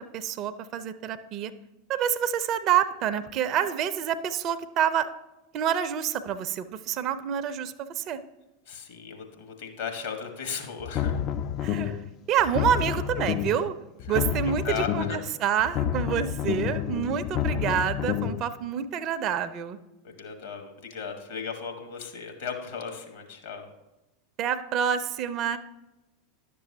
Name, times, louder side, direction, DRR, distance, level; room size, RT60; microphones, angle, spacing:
voice 1, 0.0-1.5 1.9-5.1 5.5-8.2 11.6-12.0 12.3-13.8 14.1-19.8 24.4-25.6, right 9 dB, 40° right, 12 dB, 0.4 m, -27 dB
voice 2, 8.7-11.2 14.1-14.2 14.6-15.2 20.0-23.7, left 6 dB, 60° left, 4 dB, 1.3 m, -36 dB
sound 1, 10.8-12.1 12.4-13.7 14.0-15.3 15.6-18.4, left 9 dB, 40° left, 0.3 m, -29 dB
10.5 x 6.8 x 2.7 m, 1.0 s
figure-of-eight pair, 85°, 0 cm